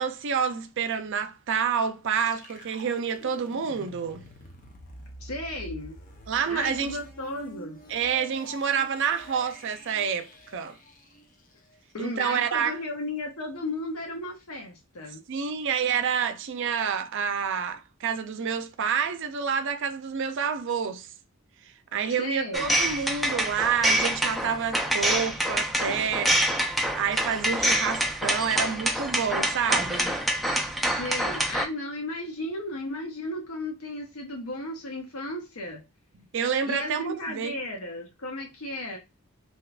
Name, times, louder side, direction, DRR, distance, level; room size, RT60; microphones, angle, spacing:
voice 1, 0.0-4.2 6.3-7.0 7.9-10.8 12.0-12.8 15.3-21.1 21.9-30.1 36.3-37.6, right 7 dB, 60° right, 0.5 m, -28 dB
sound 1, 2.2-12.0, equal, 40° left, 0.7 m, -47 dB
voice 2, 5.2-6.0 6.5-7.8 11.9-15.2 22.1-22.7 30.8-35.8 36.6-39.0, left 1 dB, 75° left, 0.7 m, -35 dB
sound 2, 22.5-31.7, right 1 dB, ahead, 0.4 m, -26 dB
3.3 x 2.8 x 2.4 m
head